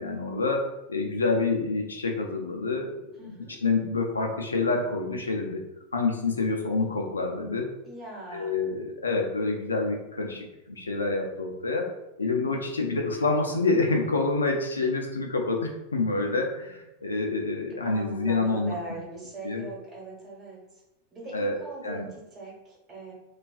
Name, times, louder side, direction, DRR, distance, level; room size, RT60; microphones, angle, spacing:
voice 1, 0.0-3.0 3.2-3.4 3.6-5.6 5.9-7.7 8.3-18.7 19.4-19.7 21.3-22.1, left 3 dB, 75° left, 2 dB, 0.3 m, -27 dB
voice 2, 3.2-3.6 7.8-8.5 17.8-20.8 21.1-23.1, right 2 dB, 25° right, -4 dB, 1.0 m, -40 dB
2.3 x 2.2 x 2.3 m, 0.91 s
figure-of-eight pair, 90°, 0 cm